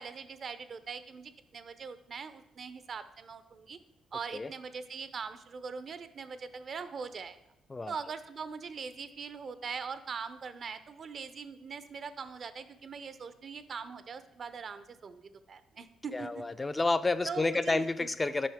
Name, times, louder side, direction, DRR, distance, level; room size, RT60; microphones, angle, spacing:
voice 1, 0.0-3.8 4.1-7.4 7.9-16.4 17.3-18.1, right 5 dB, 50° right, 12 dB, 0.5 m, -42 dB
voice 2, 16.1-18.5, left 3 dB, 25° left, 11 dB, 0.3 m, -30 dB
7.4 x 5.4 x 3.5 m, 0.88 s
supercardioid pair, 65°, 0 cm